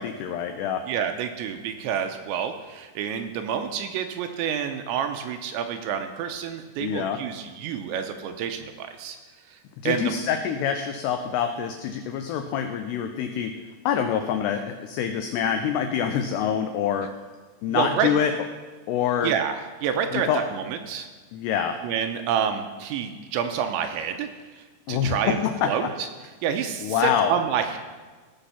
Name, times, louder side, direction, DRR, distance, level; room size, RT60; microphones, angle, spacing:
voice 1, 0.0-0.8 6.8-7.2 9.8-13.5 13.9-17.1 17.6-18.3 18.9-19.3 20.1-20.4 21.3-21.8 24.9-25.9 26.8-27.3, left 8 dB, 85° left, 6 dB, 2.3 m, -26 dB
voice 2, 0.9-9.2 9.9-10.2 17.7-18.1 19.2-21.1 21.8-24.3 24.6-25.9 26.4-27.8, right 8 dB, 85° right, 6 dB, 2.9 m, -28 dB
16.0 x 6.4 x 5.7 m, 1.4 s
omnidirectional pair, 5.5 m